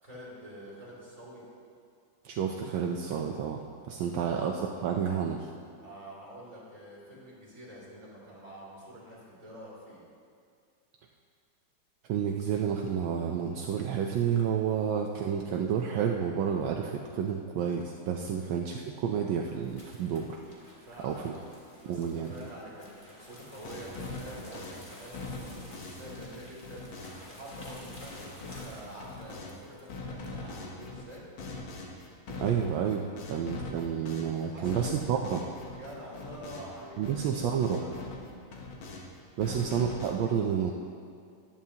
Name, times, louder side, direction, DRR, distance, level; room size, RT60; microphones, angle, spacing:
voice 1, 0.0-1.4 3.9-4.5 5.8-10.0 18.3-18.5 20.8-21.5 21.8-26.9 27.3-31.3 34.5-34.9 35.7-38.1 39.4-39.6, equal, 15° right, -7 dB, 3.0 m, -47 dB
voice 2, 2.2-3.6 3.9-5.5 12.1-20.6 21.0-21.3 21.9-22.3 32.4-35.5 37.0-37.8 39.4-40.7, right 8 dB, 75° right, 2 dB, 1.3 m, -30 dB
sound 1, 19.0-30.6, left 1 dB, 25° left, 1.7 m, -52 dB
sound 2, 23.4-29.6 29.9-36.8 37.0-39.1 39.4-40.1, left 3 dB, 75° left, 1.9 m, -42 dB
14.5 x 10.5 x 2.8 m, 2.3 s
omnidirectional pair, 2.2 m